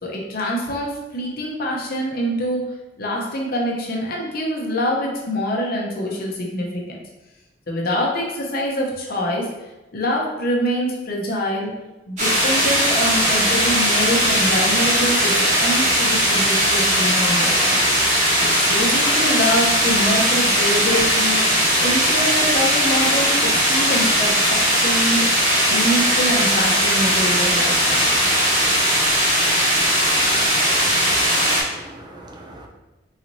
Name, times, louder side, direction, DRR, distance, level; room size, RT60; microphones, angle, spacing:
voice 1, 0.0-6.8 7.7-9.5 9.9-11.7 12.1-17.8 18.4-25.3 25.7-28.2, equal, 50° left, -1 dB, 0.8 m, -25 dB
sound 1, 12.2-31.6, equal, 40° right, 1.2 m, -18 dB
voice 2, 30.5-32.7, right 1 dB, 25° right, 1 dB, 0.4 m, -40 dB
4.0 x 3.0 x 2.7 m, 1.0 s
head